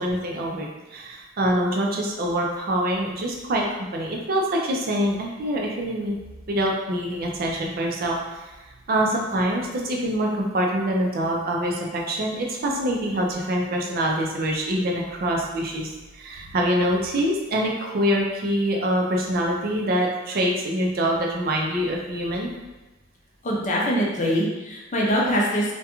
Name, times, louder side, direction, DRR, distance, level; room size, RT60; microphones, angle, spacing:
voice 1, 0.0-6.2 6.5-8.5 8.9-22.5, equal, 50° right, -1 dB, 0.4 m, -25 dB
voice 2, 23.4-25.7, equal, 40° left, -3 dB, 0.5 m, -23 dB
2.3 x 2.2 x 2.9 m, 1.1 s
head